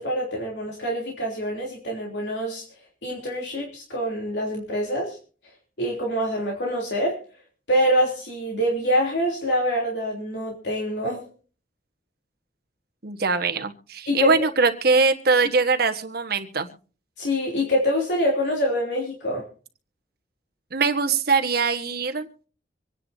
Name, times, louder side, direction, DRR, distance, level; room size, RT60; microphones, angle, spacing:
voice 1, 0.0-2.6 3.0-5.2 5.8-7.2 7.7-11.3 14.1-14.4 17.2-19.4, equal, 85° left, -2 dB, 3.3 m, -25 dB
voice 2, 13.0-16.7 20.7-22.3, right 4 dB, 65° right, 6 dB, 1.4 m, -22 dB
25.5 x 10.0 x 2.7 m, 0.39 s
head